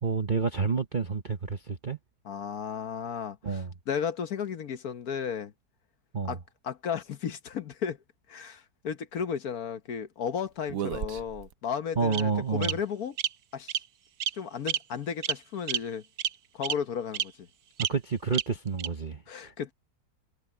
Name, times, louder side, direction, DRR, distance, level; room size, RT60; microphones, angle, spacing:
voice 1, 0.0-2.0 3.4-3.7 6.1-6.4 12.0-12.7 17.8-19.5, right 5 dB, 40° right, 0.7 m, -29 dB
voice 2, 2.2-5.5 6.2-6.4 6.6-8.0 8.3-13.2 13.5-13.8 14.3-16.0 16.5-17.5 19.3-19.7, left 7 dB, 60° left, 1.3 m, -34 dB
Bird vocalization bird call bird song, 10.7-11.5 12.1-12.2 12.6-12.7 13.2-13.3 13.7-13.8 14.2-14.3 14.7-14.8 15.2-15.4 15.7-15.8 16.2-16.3 16.6-16.7 17.1-17.2 17.8-17.9 18.3-18.4 18.8-18.9, right 9 dB, 60° right, 1.0 m, -29 dB
omnidirectional pair, 1.9 m